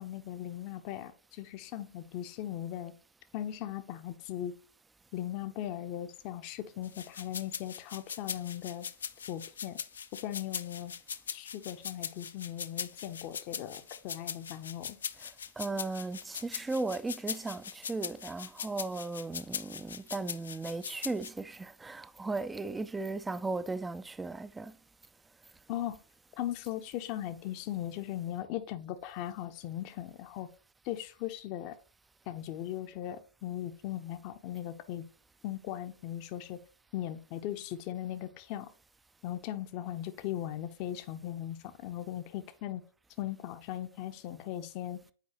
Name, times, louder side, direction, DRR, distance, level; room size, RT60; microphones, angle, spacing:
voice 1, 0.0-2.9 3.3-4.6 5.1-8.9 9.3-9.8 10.2-10.9 11.3-15.0 25.7-26.0 26.4-30.5 30.8-31.8 32.3-35.1 35.4-36.6 36.9-38.7 39.2-42.8 43.2-45.0, left 12 dB, 40° left, 0.8 m, -38 dB
sound 1, 6.8-21.3, left 7 dB, 70° left, 0.4 m, -40 dB
voice 2, 15.6-24.7, right 3 dB, 10° right, 0.4 m, -36 dB
8.2 x 4.7 x 3.0 m
figure-of-eight pair, 105°, 0 cm